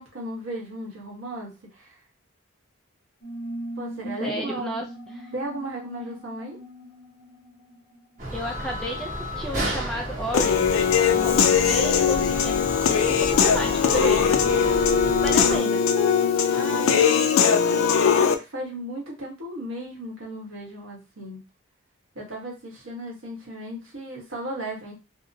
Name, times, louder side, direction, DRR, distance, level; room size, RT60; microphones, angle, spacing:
voice 1, 0.0-2.0 3.8-4.8 5.3-6.6 16.5-17.9 18.1-21.4 22.1-24.9, right 1 dB, 75° right, -2 dB, 1.2 m, -36 dB
sound 1, 3.2-8.4, right 1 dB, 60° left, 0.7 m, -39 dB
voice 2, 4.2-4.8 5.1-5.3 8.3-14.4 15.2-15.8, equal, ahead, 0 dB, 0.3 m, -32 dB
sound 2, 8.2-15.6, equal, 40° right, 0.8 m, -32 dB
Human voice / Piano, 10.3-18.3, left 7 dB, 85° left, 0.4 m, -20 dB
2.8 x 2.0 x 2.6 m, 0.28 s
head